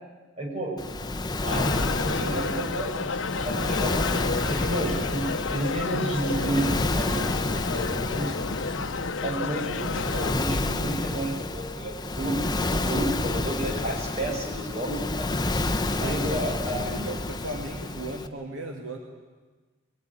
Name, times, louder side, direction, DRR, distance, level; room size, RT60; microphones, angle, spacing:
voice 1, 0.4-0.8 1.4-3.9 4.4-7.3 7.6-8.3 9.2-15.3 16.0-16.8, right 1 dB, 30° right, -1 dB, 6.3 m, -31 dB
Waves surf, 0.8-18.3, left 2 dB, 20° left, 0.8 m, -29 dB
sound 1, 1.5-10.3, left 4 dB, 75° left, 0.8 m, -31 dB
voice 2, 15.9-19.0, right 2 dB, 75° right, 2 dB, 2.3 m, -37 dB
21.5 x 19.0 x 9.8 m, 1.3 s
head